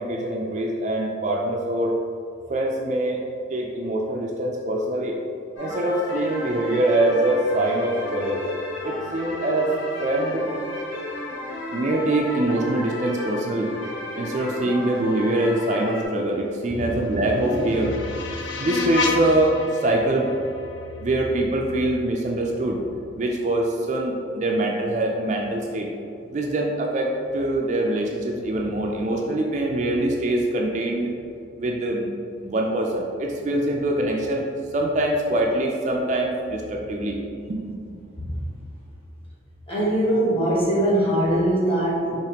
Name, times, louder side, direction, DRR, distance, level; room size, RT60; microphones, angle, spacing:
voice 1, 0.0-2.0 2.5-3.2 3.5-5.2 5.6-8.4 8.8-9.7 10.0-10.5 11.7-13.7 14.2-20.3 21.0-22.8 23.2-25.9 26.3-31.1 31.6-32.1 32.4-37.2 37.5-37.8, right 1 dB, 35° right, 0 dB, 0.3 m, -24 dB
sound 1, 5.6-16.1, left 2 dB, 80° left, 1.3 m, -33 dB
sound 2, 16.7-21.7, left 4 dB, 65° left, 0.4 m, -32 dB
voice 2, 39.7-42.1, right 1 dB, 30° left, -7 dB, 1.2 m, -21 dB
4.9 x 3.0 x 2.9 m, 2.5 s
head